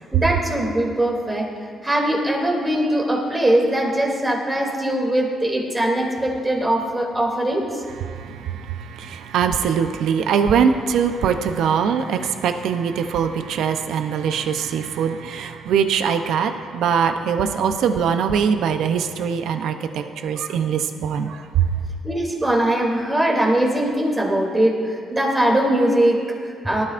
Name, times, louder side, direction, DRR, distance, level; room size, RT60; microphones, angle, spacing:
voice 1, 0.1-1.5 1.8-7.8 22.0-26.8, right 1 dB, 20° right, -1 dB, 2.7 m, -21 dB
voice 2, 8.1-21.7, right 7 dB, 80° right, 8 dB, 0.6 m, -22 dB
18.5 x 12.5 x 2.5 m, 2.2 s
cardioid pair, 90°, 0 cm